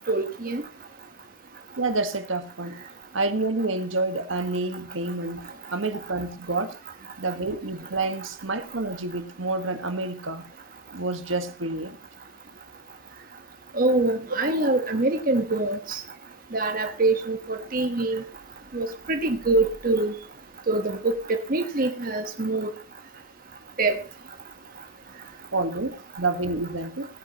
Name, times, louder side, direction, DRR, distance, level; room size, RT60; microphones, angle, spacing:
voice 1, 0.1-0.6 13.7-16.0 16.5-18.2 18.7-20.1 20.7-22.8 23.8-24.0, right 2 dB, 45° right, 1.3 m, -24 dB
voice 2, 1.8-2.8 3.1-6.7 7.2-10.5 10.9-12.0 25.5-27.1, right 2 dB, 90° right, 1.6 m, -28 dB
17.5 x 9.7 x 3.0 m
head